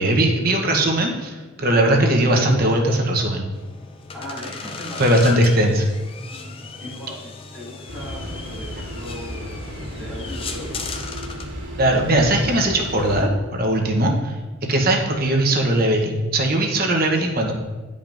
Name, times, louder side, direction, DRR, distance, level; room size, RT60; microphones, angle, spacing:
voice 1, 0.0-3.5 5.0-5.9 11.8-14.1 14.7-17.5, right 1 dB, 45° right, 1 dB, 0.9 m, -19 dB
sound 1, 3.5-11.5, left 4 dB, 25° left, 0.4 m, -36 dB
voice 2, 4.1-5.2 6.3-10.7 13.8-14.0, left 1 dB, ahead, -9 dB, 2.3 m, -38 dB
sound 2, 7.9-13.2, equal, 60° right, 2.0 m, -33 dB
10.5 x 5.2 x 2.6 m, 1.3 s
head